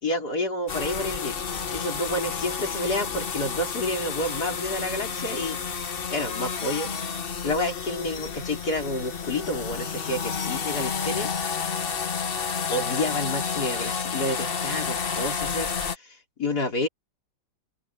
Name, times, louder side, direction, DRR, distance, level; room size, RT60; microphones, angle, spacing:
voice 1, 0.0-7.2 7.4-11.7 12.7-16.9, left 1 dB, 55° left, 4.9 m, -30 dB
sound 1, 0.7-16.0, left 6 dB, 40° left, 1.0 m, -30 dB
open air
omnidirectional pair, 2.0 m